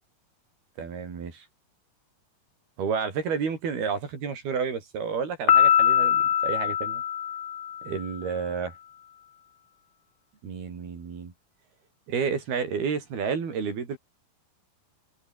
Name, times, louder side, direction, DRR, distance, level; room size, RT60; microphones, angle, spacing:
voice 1, 0.8-1.5 2.8-7.0 7.8-8.7 10.4-11.3 12.1-14.0, right 6 dB, 75° right, 6.6 m, -30 dB
Piano, 5.5-8.0, left 9 dB, 80° left, 1.1 m, -22 dB
omnidirectional pair, 4.5 m